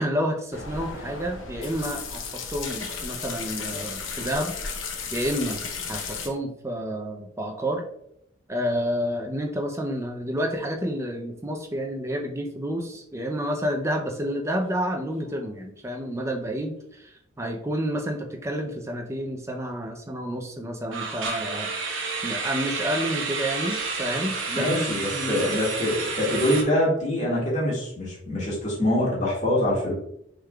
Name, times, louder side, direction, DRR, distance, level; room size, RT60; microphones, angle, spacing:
voice 1, 0.0-4.5 5.1-7.8 8.5-21.7 22.2-25.5, equal, 15° right, 3 dB, 0.5 m, -29 dB
sound 1, 0.5-6.3, left 5 dB, 80° left, 0.8 m, -34 dB
sound 2, 14.7-15.0 15.3-15.5 16.0-16.1 20.9-26.6, right 4 dB, 75° right, 0.9 m, -30 dB
voice 2, 24.5-29.9, left 1 dB, 35° left, -5 dB, 1.8 m, -24 dB
6.2 x 3.7 x 2.3 m, 0.73 s
head